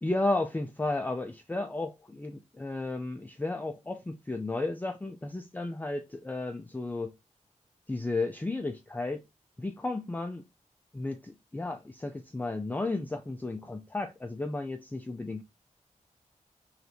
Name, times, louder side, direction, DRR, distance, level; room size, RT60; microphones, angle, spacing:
voice 1, 0.0-7.1 7.9-9.2 9.6-10.4 10.9-15.4, left 2 dB, 15° left, 0.4 m, -33 dB
4.5 x 3.2 x 2.6 m
wide cardioid pair, 125°, 13 cm